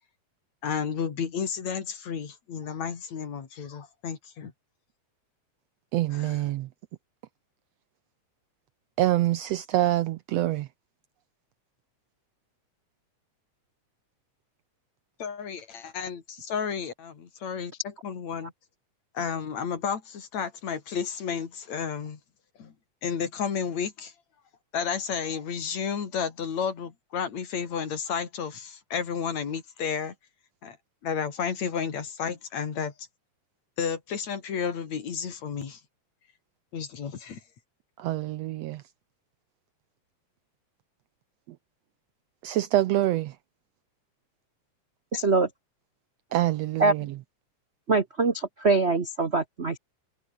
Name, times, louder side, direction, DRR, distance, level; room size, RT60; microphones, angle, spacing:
voice 1, 0.6-4.5 6.1-6.4 15.2-18.5 19.1-22.2 22.6-22.7 23.0-24.1 24.7-30.1 30.6-30.8 31.0-32.9 33.8-35.8 36.7-37.4, left 7 dB, 65° left, 4.0 m, -32 dB
voice 2, 5.9-6.7 9.0-10.7 38.0-38.8 42.4-43.3 46.3-47.1, right 14 dB, 75° right, 1.6 m, -25 dB
voice 3, 45.1-45.5 46.8-46.9 47.9-49.8, right 3 dB, 55° right, 0.7 m, -23 dB
omnidirectional pair, 3.5 m